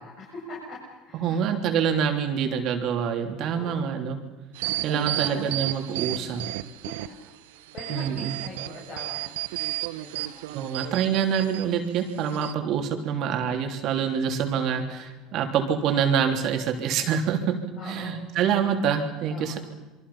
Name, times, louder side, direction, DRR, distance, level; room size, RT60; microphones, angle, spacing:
voice 1, 0.0-1.4 3.5-4.0 4.6-5.7 6.2-6.5 6.8-6.9 7.7-9.4 10.0-10.3 14.0-14.1 17.8-18.3 19.3-19.6, left 3 dB, 50° left, -5 dB, 7.6 m, -42 dB
voice 2, 1.2-4.2 4.8-6.4 7.9-8.4 10.5-17.6 17.8-19.6, right 7 dB, 60° right, 5 dB, 3.3 m, -26 dB
sound 1, 4.5-7.3 7.7-11.6 12.2-12.5, right 16 dB, 80° right, 0.8 m, -33 dB
27.5 x 23.5 x 5.7 m, 1.1 s
supercardioid pair, 90°, 0 cm